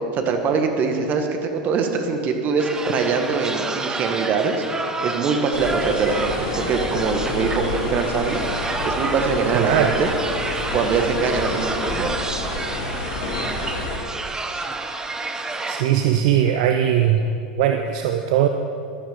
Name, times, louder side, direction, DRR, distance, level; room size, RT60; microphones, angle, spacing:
voice 1, 0.0-4.6 5.0-8.4 8.8-10.1 10.7-12.1, right 5 dB, 40° right, 5 dB, 1.7 m, -23 dB
sound 1, 2.6-15.8, right 3 dB, 15° right, 1.0 m, -29 dB
sound 2, 5.5-14.0, left 2 dB, 60° left, 2.9 m, -29 dB
voice 2, 9.5-9.9 15.7-18.5, right 10 dB, 60° right, 6 dB, 0.7 m, -20 dB
12.5 x 12.0 x 5.3 m, 2.6 s
hypercardioid pair, 85°, 4 cm